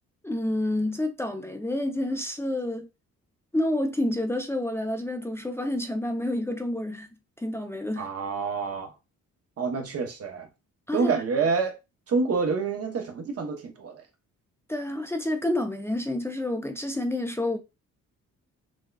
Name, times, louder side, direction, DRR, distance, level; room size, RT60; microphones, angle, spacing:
voice 1, 0.2-2.9 3.5-7.1 7.4-8.1 10.9-11.1 14.7-17.6, left 1 dB, 10° left, 0.5 m, -29 dB
voice 2, 8.0-8.9 9.6-10.5 10.9-11.8 12.1-14.0, right 4 dB, 50° right, 0.9 m, -27 dB
6.1 x 2.2 x 2.3 m
cardioid pair, 90°, 30 cm